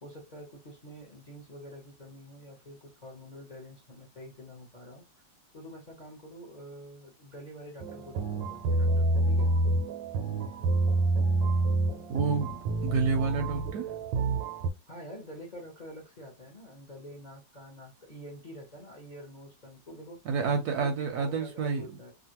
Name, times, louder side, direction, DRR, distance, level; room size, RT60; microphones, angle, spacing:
voice 1, 0.0-5.1 5.5-9.5 14.9-20.2 20.8-22.1, equal, 40° left, 0.7 m, -47 dB
sound 1, 7.8-14.7, right 2 dB, 85° right, 1.3 m, -28 dB
voice 2, 12.1-13.9 20.3-21.9, right 4 dB, 70° right, 1.0 m, -29 dB
2.9 x 2.4 x 2.9 m
omnidirectional pair, 2.0 m